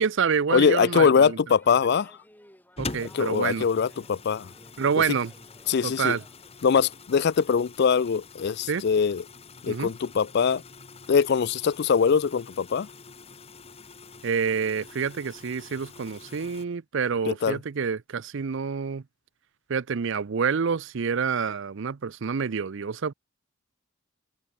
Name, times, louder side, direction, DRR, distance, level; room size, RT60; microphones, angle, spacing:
voice 1, 0.0-1.4 2.8-3.7 4.8-5.3 5.8-6.2 8.7-8.9 9.7-9.9 14.2-19.0 19.7-23.1, right 6 dB, 60° right, 0.5 m, -27 dB
voice 2, 0.5-2.2 3.1-4.5 5.7-6.2 6.6-9.2 9.6-10.6 11.1-12.9 17.3-17.6, left 6 dB, 50° left, 0.4 m, -22 dB
sound 1, 1.5-7.0, equal, 10° left, 4.9 m, -54 dB
sound 2, 2.8-16.7, left 4 dB, 30° left, 1.3 m, -45 dB
head